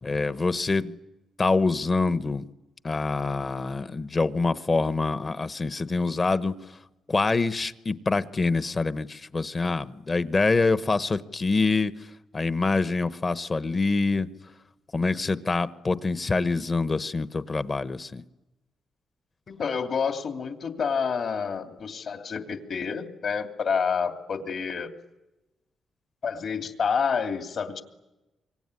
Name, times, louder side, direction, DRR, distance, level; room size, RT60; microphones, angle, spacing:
voice 1, 0.0-1.0 1.4-2.4 2.8-6.6 7.1-11.9 12.3-14.3 14.9-18.2, left 3 dB, 30° left, 13 dB, 1.0 m, -25 dB
voice 2, 19.5-24.9 26.2-27.8, left 6 dB, 60° left, 5 dB, 2.8 m, -28 dB
25.5 x 24.0 x 9.8 m, 1.0 s
cardioid pair, 105°, 0 cm